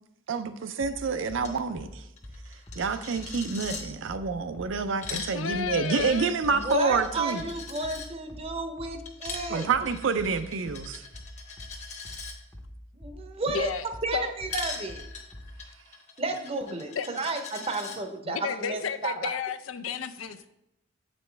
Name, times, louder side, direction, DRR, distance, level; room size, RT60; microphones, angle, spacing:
voice 1, 0.3-2.0 2.8-7.4 9.5-11.1, right 4 dB, 75° right, 10 dB, 0.5 m, -28 dB
sound 1, 0.8-15.6, equal, 20° left, 0.6 m, -44 dB
Coin (dropping), 1.4-1.6 1.8-1.9 2.2-3.8 4.8-8.1 9.1-12.3 14.5-18.0, left 5 dB, 35° left, 1.0 m, -41 dB
voice 2, 5.1-6.3 13.5-13.8 14.1-14.3 16.7-17.1 18.3-20.5, left 7 dB, 85° left, 11 dB, 0.5 m, -32 dB
voice 3, 6.5-9.7 12.9-13.7 14.0-15.0 16.2-19.3, right 3 dB, 30° right, 6 dB, 0.7 m, -32 dB
7.9 x 5.2 x 3.3 m, 0.84 s
head